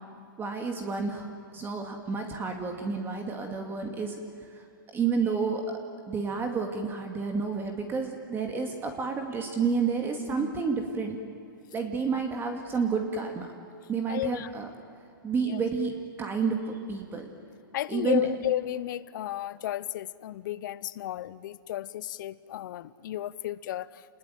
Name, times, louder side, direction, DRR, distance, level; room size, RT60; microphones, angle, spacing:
voice 1, 0.4-1.3 1.5-4.2 4.5-4.6 4.9-5.6 6.1-11.2 11.7-13.5 13.9-14.7 15.2-17.3 17.9-18.3, right 5 dB, 20° right, 3 dB, 2.3 m, -30 dB
voice 2, 14.1-14.5 15.3-15.6 17.7-24.1, left 13 dB, 60° left, 18 dB, 0.9 m, -33 dB
29.0 x 20.0 x 9.4 m, 2.6 s
hypercardioid pair, 140°, 12 cm